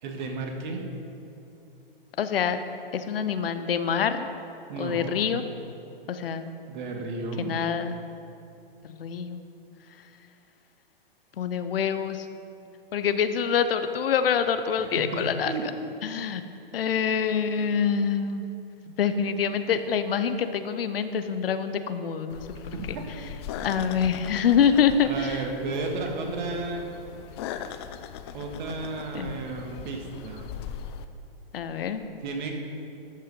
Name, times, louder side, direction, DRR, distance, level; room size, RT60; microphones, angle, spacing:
voice 1, 0.0-0.8 4.7-5.2 6.7-7.5 14.8-15.6 22.7-23.0 23.7-23.9 25.0-26.9 28.3-30.5 32.2-32.6, right 3 dB, 50° right, 2 dB, 1.7 m, -33 dB
voice 2, 2.2-2.6 2.9-4.3 4.8-5.4 6.1-6.5 7.4-8.0 8.8-9.4 11.4-12.3 12.9-15.5 16.0-16.4 16.7-18.4 18.9-23.0 23.6-25.4 26.2-26.3 29.1-29.3 31.5-32.0, left 7 dB, 75° left, 10 dB, 0.8 m, -26 dB
sound 1, 22.3-31.1, left 8 dB, 30° left, 0.4 m, -40 dB
12.5 x 5.5 x 5.4 m, 2.7 s
hypercardioid pair, 130°, 29 cm